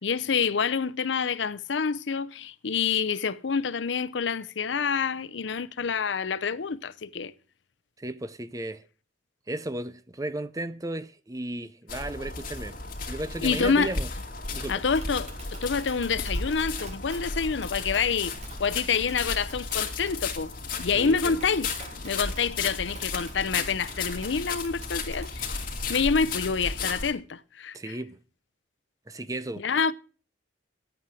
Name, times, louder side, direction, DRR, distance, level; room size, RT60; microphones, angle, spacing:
voice 1, 0.0-7.3 13.4-13.9 14.7-18.3 18.6-20.5 20.8-21.7 22.0-25.6 25.9-28.0 29.6-29.9, left 5 dB, 80° left, 0.6 m, -27 dB
voice 2, 8.0-8.8 9.5-12.8 13.1-14.1 14.5-14.8 20.9-21.4 27.7-28.2 29.1-29.6, right 1 dB, 20° right, 0.6 m, -34 dB
sound 1, 11.9-27.1, left 4 dB, 50° left, 2.4 m, -34 dB
Tap, 14.7-26.0, right 3 dB, 40° right, 2.9 m, -48 dB
11.5 x 8.6 x 6.1 m
head